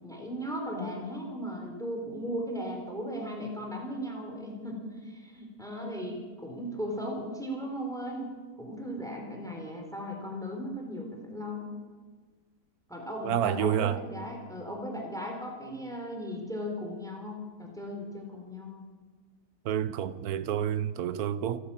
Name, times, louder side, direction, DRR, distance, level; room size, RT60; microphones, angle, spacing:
voice 1, 0.0-6.2 6.4-8.3 8.6-11.8 12.9-18.8, equal, ahead, 4.0 m, -37 dB
voice 2, 13.2-14.0 19.6-21.6, right 10 dB, 65° right, 1.3 m, -29 dB
28.0 x 11.5 x 9.0 m
omnidirectional pair, 1.8 m